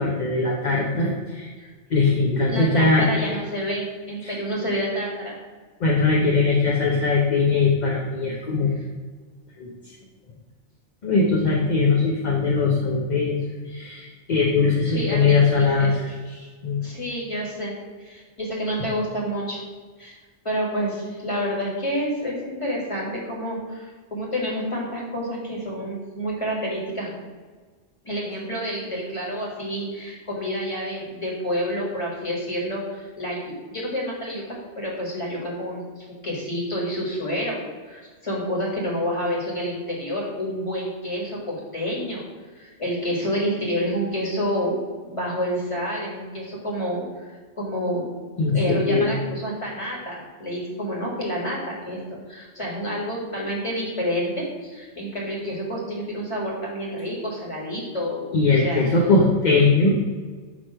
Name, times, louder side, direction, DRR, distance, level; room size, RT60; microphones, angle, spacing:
voice 1, 0.0-1.5 1.9-3.1 4.2-4.4 5.8-8.7 9.6-9.7 11.0-13.4 13.6-15.9 16.4-16.8 48.4-49.1 58.3-60.1, left 3 dB, 45° left, -2 dB, 0.7 m, -20 dB
voice 2, 2.5-5.4 8.7-8.8 14.8-16.0 16.8-17.7 18.0-19.6 20.0-20.2 20.4-27.2 28.0-34.4 34.8-37.6 37.8-42.2 42.5-44.8 45.0-47.0 47.6-48.1 48.5-52.0 52.3-58.8, equal, 25° left, -4 dB, 1.6 m, -28 dB
6.0 x 3.1 x 5.5 m, 1.4 s
omnidirectional pair, 1.3 m